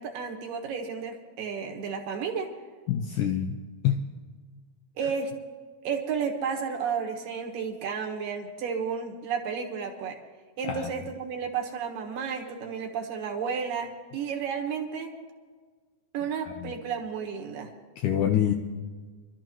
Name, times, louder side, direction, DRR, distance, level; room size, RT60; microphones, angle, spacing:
voice 1, 0.0-2.5 5.0-5.3 5.8-10.2 10.6-15.1 16.1-17.7, right 6 dB, 70° right, 3 dB, 2.9 m, -32 dB
voice 2, 2.9-3.6 3.8-4.0 10.6-10.9 16.6-16.7 18.0-18.5, left 10 dB, 80° left, 4 dB, 1.8 m, -25 dB
25.5 x 13.0 x 3.0 m, 1.5 s
omnidirectional pair, 4.3 m